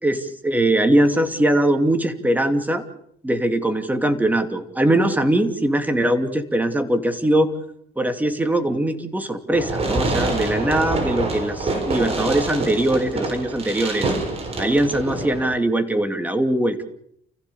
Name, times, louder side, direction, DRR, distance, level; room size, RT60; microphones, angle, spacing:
voice 1, 0.0-2.8 3.2-7.5 8.0-14.1 14.6-16.8, right 1 dB, 10° right, 6 dB, 2.7 m, -21 dB
Fireworks, 9.5-15.5, right 2 dB, 35° right, 6.6 m, -26 dB
30.0 x 15.5 x 7.0 m, 0.72 s
cardioid pair, 110°, 17 cm